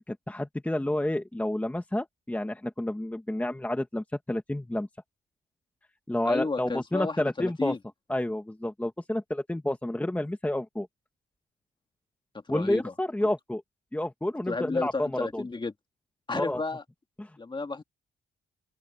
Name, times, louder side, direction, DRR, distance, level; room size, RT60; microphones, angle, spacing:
voice 1, 0.1-4.9 6.1-7.7 8.1-10.9 12.5-13.6 13.9-15.4 16.3-16.6 17.2-17.3, left 1 dB, 5° left, 1.5 m, -30 dB
voice 2, 6.2-7.8 12.5-12.9 14.5-15.7 16.3-16.8 17.4-17.8, left 3 dB, 25° left, 2.1 m, -32 dB
open air
cardioid pair, 90°, 20 cm